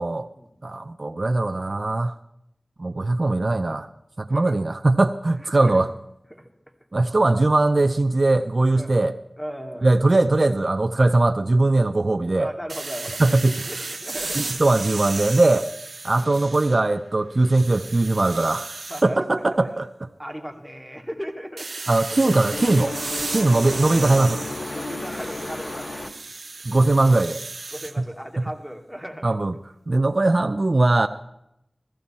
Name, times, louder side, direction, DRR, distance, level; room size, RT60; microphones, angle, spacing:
voice 1, 0.6-2.1 2.8-3.9 4.2-5.9 6.9-9.1 9.8-12.5 13.2-13.6 14.4-15.7 16.0-18.8 19.0-20.1 21.9-22.9 23.3-24.4 26.7-27.4 28.0-28.1 29.2-29.5 29.9-31.1, right 2 dB, 60° right, 8 dB, 0.6 m, -20 dB
voice 2, 5.4-5.8 6.3-6.5 8.8-9.0 9.4-10.0 12.4-13.2 13.5-14.6 16.2-16.5 18.9-19.2 20.2-21.7 22.1-22.3 24.7-26.1 27.7-29.4, equal, ahead, 4 dB, 2.3 m, -36 dB
sound 1, 12.7-17.0 17.4-19.1 21.6-27.9, right 3 dB, 85° right, 0.9 m, -34 dB
sound 2, 22.5-26.1, left 2 dB, 55° left, 1.0 m, -32 dB
15.5 x 14.5 x 4.3 m, 0.81 s
wide cardioid pair, 40°, 0 cm